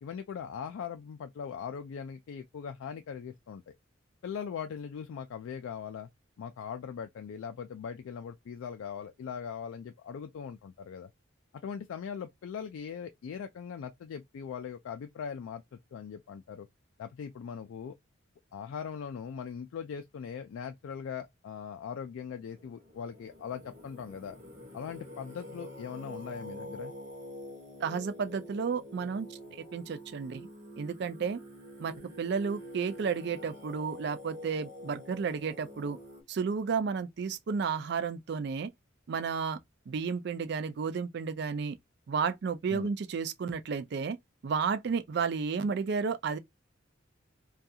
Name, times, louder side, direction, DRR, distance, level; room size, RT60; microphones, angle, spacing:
voice 1, 0.0-3.7 4.2-6.1 6.4-11.1 11.6-16.7 17.0-17.9 18.5-24.4 24.7-26.9 42.7-42.9, left 7 dB, 80° left, 0.3 m, -40 dB
Singing, 22.4-36.2, left 1 dB, 35° right, 0.9 m, -47 dB
voice 2, 27.8-30.5 30.8-31.4 31.8-36.0 36.3-38.7 39.1-39.6 39.9-41.8 42.1-44.2 44.4-46.4, right 5 dB, 55° right, 0.3 m, -32 dB
2.3 x 2.3 x 2.7 m
head